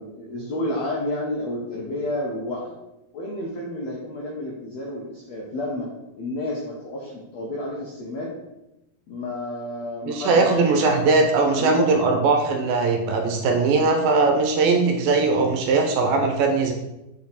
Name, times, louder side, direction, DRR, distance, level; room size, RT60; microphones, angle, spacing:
voice 1, 0.0-2.7 3.1-5.9 6.2-8.3 9.1-12.0, left 1 dB, 75° left, -3 dB, 1.5 m, -30 dB
voice 2, 10.1-16.7, right 3 dB, 75° right, 3 dB, 2.4 m, -20 dB
6.2 x 4.3 x 4.1 m, 0.91 s
omnidirectional pair, 4.4 m